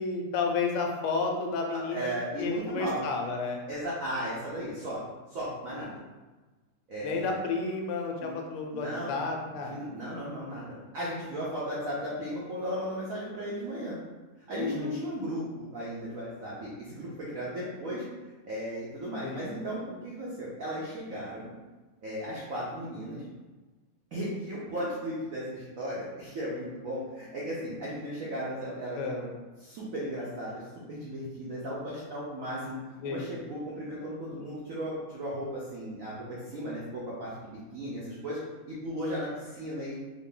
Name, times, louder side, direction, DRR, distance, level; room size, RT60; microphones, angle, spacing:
voice 1, 0.0-2.1 2.4-3.6 7.0-9.8 14.5-15.0 19.2-19.5 29.0-29.2 33.0-33.3, left 4 dB, 90° left, 2 dB, 1.5 m, -31 dB
voice 2, 1.7-3.0 3.7-5.0 5.3-6.0 6.9-7.4 8.2-8.3 8.7-9.2 9.6-14.0 14.5-18.0 18.4-21.5 22.0-23.2 24.1-29.3 29.6-30.6 30.9-38.4 38.7-39.9, equal, 75° right, -7 dB, 0.7 m, -36 dB
3.7 x 2.1 x 3.7 m, 1.3 s
omnidirectional pair, 2.3 m